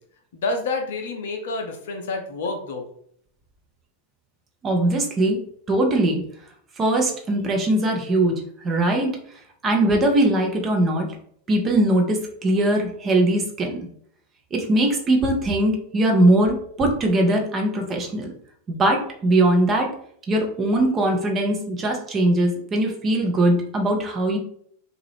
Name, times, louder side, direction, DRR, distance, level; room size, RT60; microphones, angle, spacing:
voice 1, 0.3-2.9, left 3 dB, 55° left, 4 dB, 0.6 m, -28 dB
voice 2, 4.6-5.4 5.7-6.2 6.8-9.1 9.6-11.1 11.5-13.7 14.5-18.3 18.7-19.9 20.3-24.4, right 1 dB, 25° right, 2 dB, 0.7 m, -21 dB
2.7 x 2.4 x 3.2 m, 0.64 s
figure-of-eight pair, 90°, 0 cm